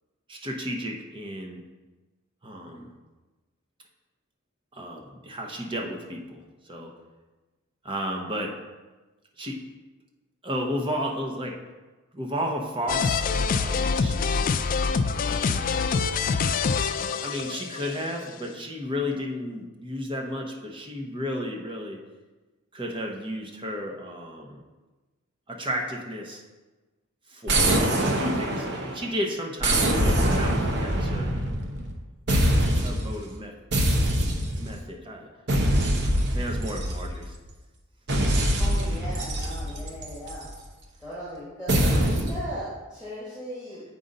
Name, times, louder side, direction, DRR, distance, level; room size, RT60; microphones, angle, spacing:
voice 1, 0.3-1.6 2.4-2.9 4.7-6.9 7.8-8.6 9.4-9.6 10.4-11.6 12.1-14.5 15.2-15.7 17.2-22.0 22.7-24.6 25.5-26.4 27.3-31.3 32.8-33.5 34.6-35.3 36.3-37.4, equal, 25° right, 1 dB, 0.9 m, -33 dB
sound 1, 12.9-18.0, left 5 dB, 40° left, 0.3 m, -25 dB
sound 2, 27.5-29.1 29.6-32.0 32.3-33.1 33.7-34.7 35.5-37.4 38.1-40.5 41.7-42.4, right 1 dB, 55° right, 0.9 m, -24 dB
voice 2, 38.6-40.5 41.0-43.8, equal, 5° right, -11 dB, 2.2 m, -38 dB
7.6 x 5.4 x 3.9 m, 1.2 s
head